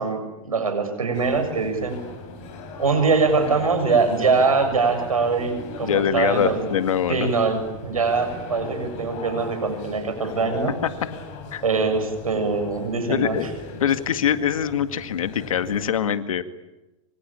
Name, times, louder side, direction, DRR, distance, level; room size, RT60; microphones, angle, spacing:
voice 1, 0.0-2.0 2.8-6.7 7.1-10.8 11.6-13.4, right 4 dB, 90° right, 7 dB, 7.5 m, -23 dB
sound 1, 1.1-15.9, left 3 dB, 45° left, 7.7 m, -38 dB
voice 2, 5.8-7.3 10.8-10.9 11.5-11.6 13.1-13.5 13.8-16.4, left 9 dB, 75° left, 10 dB, 2.0 m, -23 dB
26.5 x 25.5 x 8.9 m, 1.0 s
hypercardioid pair, 110°, 18 cm